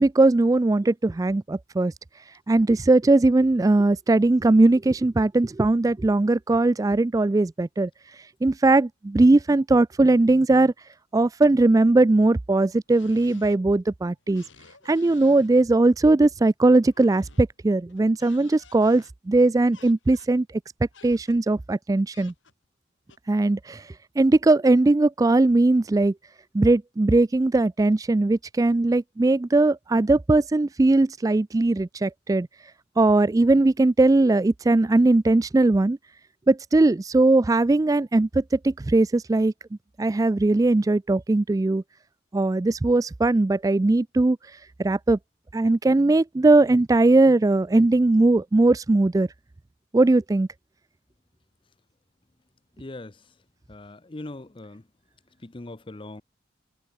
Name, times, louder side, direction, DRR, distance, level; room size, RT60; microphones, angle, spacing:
voice 1, 0.0-1.9 2.5-7.9 8.4-10.7 11.1-14.4 14.9-20.5 21.0-22.3 23.3-23.9 24.2-26.1 26.5-32.5 33.0-36.0 36.5-39.5 40.0-41.8 42.3-44.4 44.8-45.2 45.5-49.3 49.9-50.5, right 2 dB, 20° right, 0.3 m, -19 dB
sound 1, 12.9-13.7 14.0-15.5 16.8-17.6 17.9-19.1 19.7-20.4 20.9-21.4 22.1-22.7 23.1-23.2, left 4 dB, 85° left, 4.9 m, -53 dB
voice 2, 52.8-53.2 53.7-54.8 55.4-56.2, left 2 dB, 25° left, 0.7 m, -40 dB
head